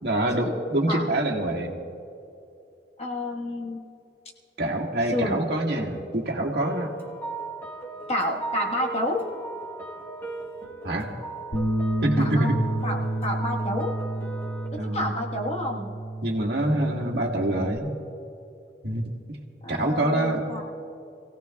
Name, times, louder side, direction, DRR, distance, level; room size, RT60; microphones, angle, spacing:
voice 1, 0.0-1.8 4.6-6.9 10.8-11.1 12.0-12.6 14.8-15.1 16.2-17.9 18.8-19.4 19.7-20.5, right 1 dB, 65° right, -1 dB, 1.6 m, -25 dB
voice 2, 3.0-3.8 5.1-5.4 8.1-9.3 12.2-12.5 12.8-14.0 14.7-15.9 19.6-20.6, left 1 dB, 35° left, 0 dB, 1.4 m, -29 dB
sound 1, 6.6-14.7, right 4 dB, 15° left, 1.3 m, -37 dB
Bass guitar, 11.5-17.8, right 1 dB, 90° left, 2.3 m, -30 dB
27.5 x 17.0 x 2.3 m, 2.6 s
head